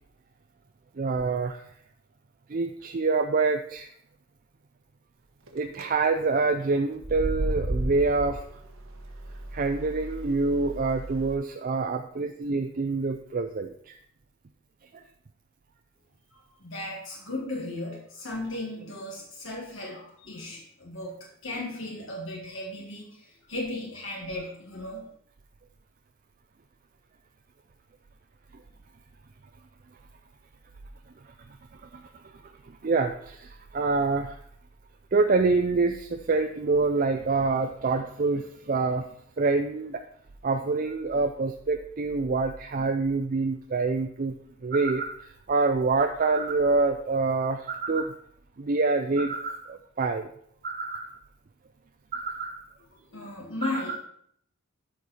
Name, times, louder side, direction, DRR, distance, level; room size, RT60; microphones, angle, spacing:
voice 1, 1.0-1.6 2.5-3.9 5.5-8.4 9.5-13.9 32.8-34.3 35.1-39.0 39.4-40.0 40.4-44.4 44.6-48.2 48.6-50.3 50.6-51.2 52.1-52.6 53.6-53.7, right 3 dB, 40° right, 6 dB, 0.4 m, -26 dB
sound 1, 5.5-5.8 6.9-11.3, right 1 dB, 70° right, 1.2 m, -34 dB
voice 2, 16.3-25.1 53.1-54.0, left 2 dB, 60° left, -2 dB, 1.8 m, -36 dB
13.0 x 4.6 x 4.1 m, 0.66 s
head